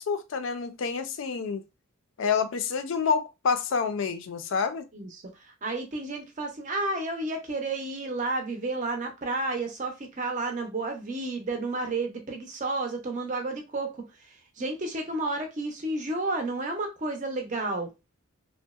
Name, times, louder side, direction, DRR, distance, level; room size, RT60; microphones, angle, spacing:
voice 1, 0.0-1.6 2.2-4.8, left 5 dB, 60° left, 0.4 m, -28 dB
voice 2, 5.6-14.0 14.6-17.9, right 2 dB, 35° right, 0.6 m, -31 dB
2.7 x 2.0 x 2.3 m
head